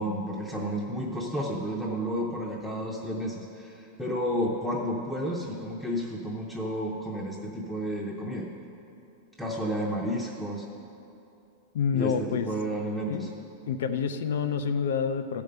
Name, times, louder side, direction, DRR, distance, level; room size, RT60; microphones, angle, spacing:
voice 1, 0.0-8.5 9.4-10.6 11.9-13.3, equal, 5° left, -3 dB, 0.7 m, -31 dB
voice 2, 11.7-12.5 13.1-13.2 13.7-15.4, left 6 dB, 80° left, 9 dB, 0.6 m, -28 dB
13.0 x 5.2 x 6.7 m, 2.7 s
supercardioid pair, 160°, 0 cm